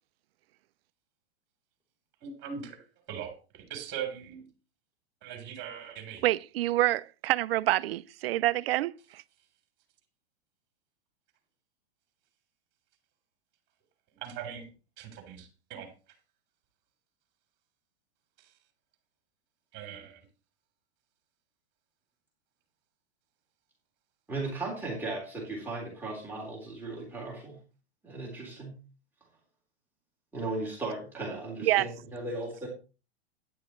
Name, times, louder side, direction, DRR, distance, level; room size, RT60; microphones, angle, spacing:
voice 1, 2.2-4.5 5.2-6.2 14.1-15.9 18.4-18.5 19.7-20.2, right 8 dB, 30° right, 3.6 m, -41 dB
voice 2, 6.2-9.2 31.6-31.9, right 16 dB, 60° right, 0.6 m, -27 dB
voice 3, 24.3-27.6 28.0-28.8 30.3-32.7, right 2 dB, 5° right, 3.7 m, -36 dB
12.5 x 10.5 x 3.1 m
hypercardioid pair, 140°, 33 cm